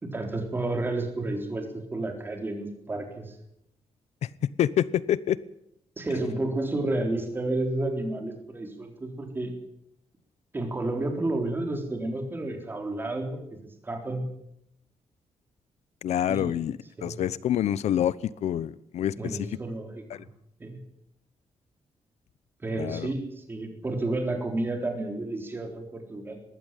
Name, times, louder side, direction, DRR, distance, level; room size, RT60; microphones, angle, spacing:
voice 1, 0.0-3.3 6.0-9.6 10.5-14.2 16.3-16.6 17.0-17.2 19.2-20.3 20.6-20.8 22.6-26.4, right 2 dB, 20° right, 4.0 m, -31 dB
voice 2, 4.6-5.4 16.0-16.8 17.0-19.5 20.1-20.2 22.8-23.1, left 10 dB, 85° left, 0.9 m, -27 dB
20.5 x 15.5 x 9.3 m
wide cardioid pair, 175°, 11 cm